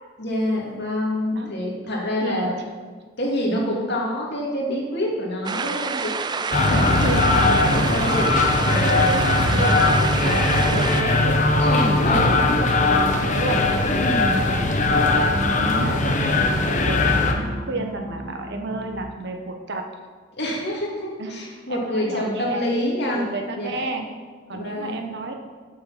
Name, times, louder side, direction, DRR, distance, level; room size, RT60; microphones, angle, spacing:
voice 1, 0.2-2.6 3.2-6.2 6.7-9.8 10.2-10.4 11.6-12.3 13.9-14.4 15.4-15.9 20.4-24.0 24.5-25.0, left 1 dB, 60° left, -3 dB, 2.3 m, -27 dB
voice 2, 2.2-2.5 3.5-3.8 6.7-7.3 9.2-11.4 11.9-13.7 15.6-19.9 21.2-21.4 21.7-22.6 23.1-24.1 24.5-25.3, right 2 dB, 60° right, 4 dB, 1.0 m, -31 dB
sound 1, 5.4-11.0, right 5 dB, 20° right, 0.4 m, -28 dB
sound 2, 6.5-17.3, left 2 dB, 40° left, 0.9 m, -20 dB
sound 3, 12.1-19.0, right 1 dB, 10° left, 1.6 m, -36 dB
7.5 x 7.2 x 5.9 m, 1.5 s
head